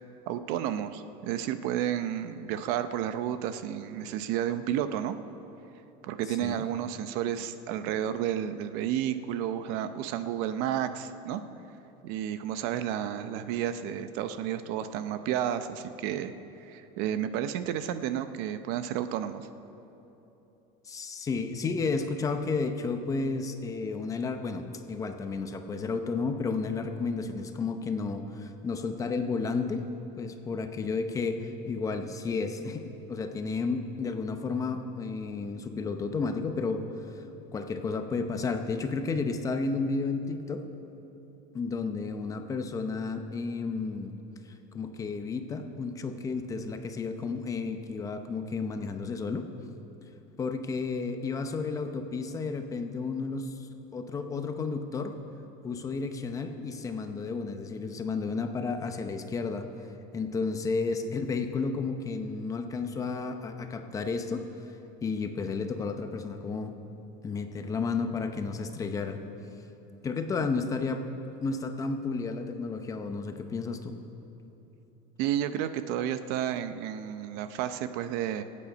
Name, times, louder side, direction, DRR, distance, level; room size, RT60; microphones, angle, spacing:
voice 1, 0.3-5.2 6.0-11.4 12.0-16.3 16.6-19.5 75.2-78.4, right 10 dB, 55° right, 11 dB, 0.7 m, -31 dB
voice 2, 6.3-6.6 20.8-29.9 30.2-36.9 37.1-37.2 37.5-40.6 41.5-44.1 44.7-49.5 50.4-53.5 53.9-55.2 55.6-59.7 60.1-64.5 65.0-66.7 67.2-69.2 70.0-71.1 71.4-73.9, left 4 dB, 15° left, 7 dB, 0.7 m, -32 dB
23.5 x 8.6 x 5.2 m, 3.0 s
cardioid pair, 165°, 19 cm